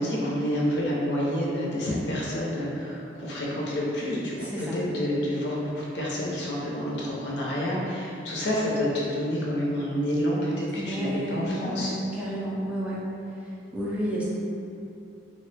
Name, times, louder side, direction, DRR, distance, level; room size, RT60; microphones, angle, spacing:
voice 1, 0.0-12.0, equal, 65° left, -5 dB, 0.6 m, -28 dB
voice 2, 4.4-4.8 10.7-13.0 13.7-14.2, equal, 5° right, -7 dB, 0.3 m, -31 dB
3.0 x 2.0 x 3.1 m, 2.7 s
head